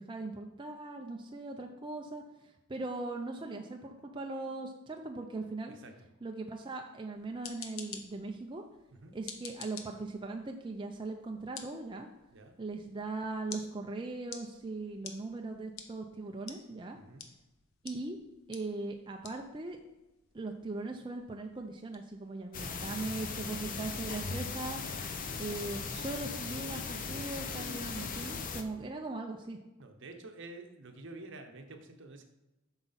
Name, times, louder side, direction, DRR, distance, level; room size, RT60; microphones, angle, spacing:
voice 1, 0.0-2.2 2.7-5.8 6.2-8.6 9.1-12.1 12.6-17.0 17.8-18.2 18.5-19.8 20.3-24.8 25.4-29.6, right 2 dB, 25° right, 2 dB, 0.5 m, -39 dB
voice 2, 5.7-6.1 8.9-9.1 12.3-12.5 16.9-17.2 23.0-23.1 29.8-32.2, right 2 dB, 60° right, 5 dB, 0.9 m, -49 dB
sound 1, 7.2-24.0, left 6 dB, 70° left, 0.9 m, -52 dB
sound 2, 22.5-28.6, left 4 dB, 40° left, 0.6 m, -38 dB
8.0 x 5.8 x 4.1 m, 1.0 s
head